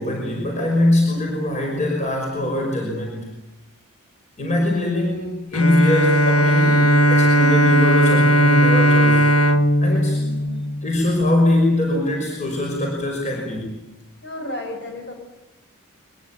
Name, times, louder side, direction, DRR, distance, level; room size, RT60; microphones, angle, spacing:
voice 1, 0.0-3.2 4.4-9.3 9.8-10.2 10.8-13.8, left 1 dB, 35° left, 0 dB, 5.7 m, -22 dB
Bowed string instrument, 5.5-11.2, equal, 90° left, 1.5 m, -17 dB
voice 2, 10.1-10.7 14.2-15.1, left 1 dB, 50° left, 3 dB, 7.6 m, -33 dB
23.5 x 21.5 x 8.6 m, 0.98 s
head